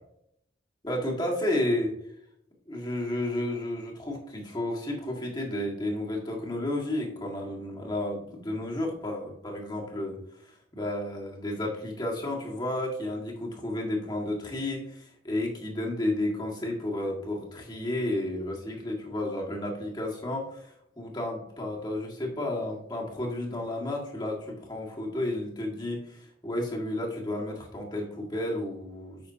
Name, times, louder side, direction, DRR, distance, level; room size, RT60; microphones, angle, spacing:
voice 1, 0.8-1.9 2.7-29.2, left 1 dB, 20° left, -2 dB, 1.8 m, -32 dB
9.7 x 6.3 x 2.8 m, 0.73 s
head